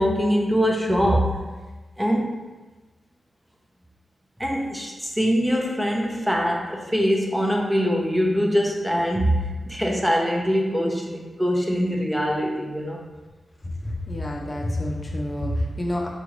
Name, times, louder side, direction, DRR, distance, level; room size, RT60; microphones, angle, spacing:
voice 1, 0.0-1.4 2.0-2.4 4.4-13.0, equal, 10° right, -1 dB, 0.8 m, -23 dB
voice 2, 13.8-16.1, left 1 dB, 40° left, -2 dB, 0.7 m, -28 dB
4.8 x 2.5 x 3.2 m, 1.2 s
cardioid pair, 45°, 0 cm